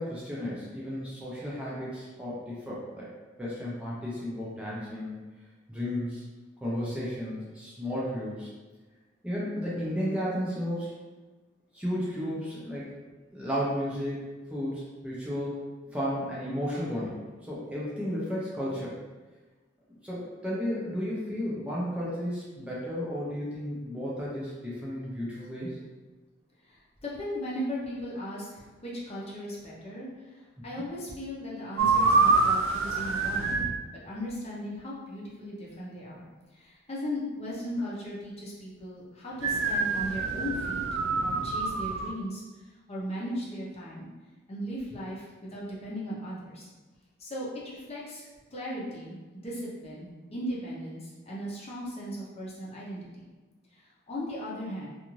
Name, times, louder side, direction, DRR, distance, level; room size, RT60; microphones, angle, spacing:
voice 1, 0.0-3.1 3.4-5.2 5.7-6.2 6.6-8.5 9.2-10.9 11.7-12.9 13.3-14.2 14.5-15.6 15.9-18.9 20.0-25.8, equal, 5° right, -7 dB, 0.5 m, -33 dB
voice 2, 26.6-33.6 33.9-36.3 36.5-40.8 41.2-42.4 42.9-44.1 44.5-46.7 47.2-53.3 53.7-54.9, equal, 35° left, -6 dB, 0.7 m, -37 dB
sound 1, 31.8-33.8 39.4-42.1, right 4 dB, 80° right, 0.3 m, -26 dB
2.5 x 2.4 x 3.0 m, 1.2 s
head